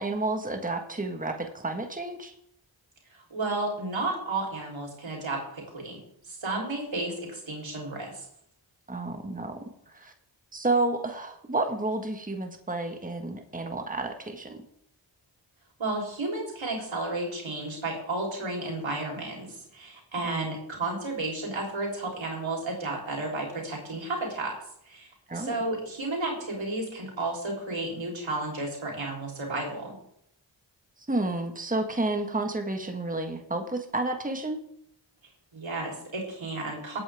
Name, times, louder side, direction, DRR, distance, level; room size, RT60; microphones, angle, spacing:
voice 1, 0.0-2.3 8.9-9.6 9.9-10.1 10.5-14.6 20.2-20.5 25.3-25.6 31.1-34.6, right 2 dB, 20° right, 5 dB, 1.5 m, -30 dB
voice 2, 3.3-6.0 6.3-8.3 15.8-24.5 24.9-30.0 35.5-37.0, right 2 dB, 85° right, -1 dB, 3.6 m, -32 dB
19.5 x 8.6 x 3.5 m, 0.71 s
cardioid pair, 40°, 45 cm